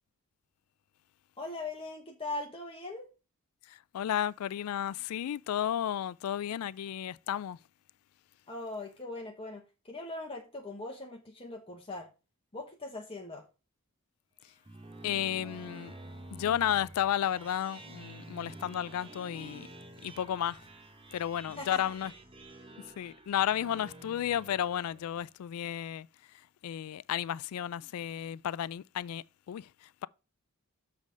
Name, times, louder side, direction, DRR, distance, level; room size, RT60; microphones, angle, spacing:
voice 1, 1.4-3.1 8.5-12.1 12.5-13.4 21.6-21.8, left 2 dB, 25° left, 1.1 m, -40 dB
voice 2, 3.7-7.6 15.0-15.9 16.3-19.7 20.0-20.6 21.1-22.1 23.0-26.1 26.6-30.1, left 10 dB, 80° left, 0.3 m, -33 dB
sound 1, 14.4-25.2, right 2 dB, 25° right, 0.9 m, -49 dB
7.5 x 3.5 x 6.2 m
head